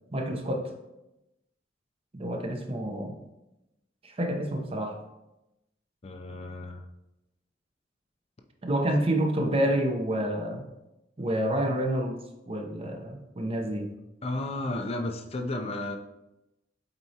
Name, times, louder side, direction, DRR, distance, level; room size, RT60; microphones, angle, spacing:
voice 1, 0.1-0.7 2.1-3.1 4.0-5.0 8.6-10.6 11.2-12.2 12.5-13.9, right 1 dB, 30° right, 3 dB, 0.8 m, -28 dB
voice 2, 6.0-6.8 14.2-16.0, left 2 dB, 35° left, 4 dB, 0.5 m, -33 dB
8.0 x 4.3 x 2.9 m, 0.93 s
head